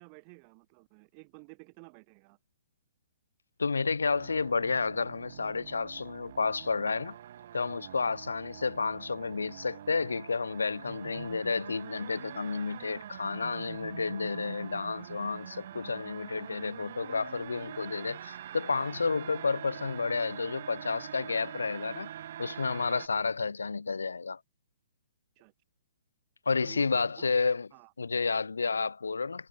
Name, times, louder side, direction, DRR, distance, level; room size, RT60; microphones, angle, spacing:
voice 1, 0.0-2.4 8.2-8.4 15.7-15.8 25.4-25.5 26.6-27.3 27.7-27.9, right 40 dB or more, 35° right, 1.6 m, -53 dB
voice 2, 3.6-7.1 7.5-22.1 22.4-24.4 26.5-27.7 28.0-29.5, left 4 dB, 75° left, 0.3 m, -31 dB
sound 1, 4.1-23.1, right 11 dB, 55° right, 1.0 m, -45 dB
figure-of-eight pair, 125°, 0 cm